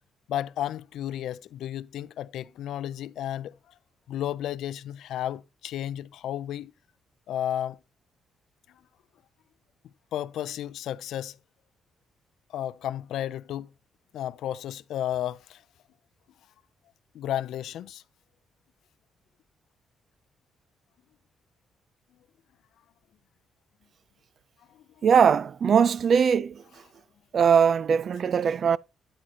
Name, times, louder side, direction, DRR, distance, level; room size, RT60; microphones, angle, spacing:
voice 1, 0.3-3.5 4.1-6.7 7.3-7.8 10.1-11.4 12.5-13.7 14.1-15.6 17.1-18.0, left 11 dB, 80° left, 0.4 m, -32 dB
voice 2, 25.0-26.8 27.3-28.8, right 7 dB, 50° right, 0.4 m, -21 dB
8.9 x 8.8 x 2.8 m
cardioid pair, 90°, 0 cm